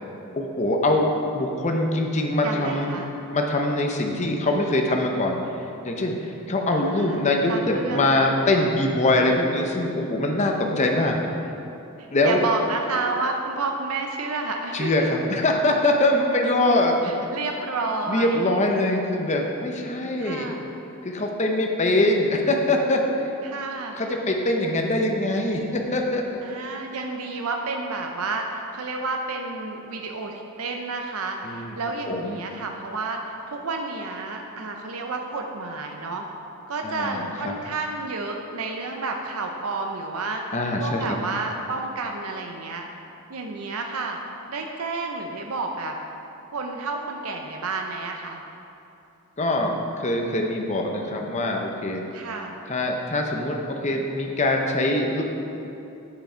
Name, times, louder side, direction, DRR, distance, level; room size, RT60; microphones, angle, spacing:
voice 1, 0.4-3.0 3.3-5.4 5.8-11.2 12.1-12.4 14.7-17.0 18.1-20.6 21.0-23.3 23.9-26.4 31.4-31.8 32.1-32.4 36.8-37.5 40.5-41.0 49.4-52.0 52.7-55.2, left 1 dB, 30° left, 1 dB, 0.7 m, -23 dB
voice 2, 2.4-3.1 6.7-7.2 7.5-8.1 12.0-15.1 17.0-18.5 20.2-20.6 23.4-23.9 26.4-36.3 36.7-40.4 40.8-42.9 43.3-44.2 44.5-46.0 46.5-48.4 52.1-52.6, right 3 dB, 75° right, 2 dB, 0.6 m, -30 dB
8.2 x 7.0 x 4.4 m, 2.8 s
head